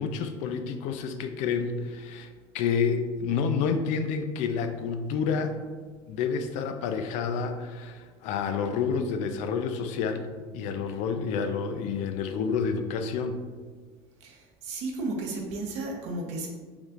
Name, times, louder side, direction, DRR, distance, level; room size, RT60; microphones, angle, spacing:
voice 1, 0.0-5.6 6.1-10.3 10.5-13.4, left 6 dB, 65° left, 7 dB, 0.5 m, -29 dB
voice 2, 14.2-16.5, right 2 dB, 65° right, 1 dB, 0.9 m, -34 dB
5.1 x 3.2 x 2.5 m, 1.5 s
supercardioid pair, 95°, 13 cm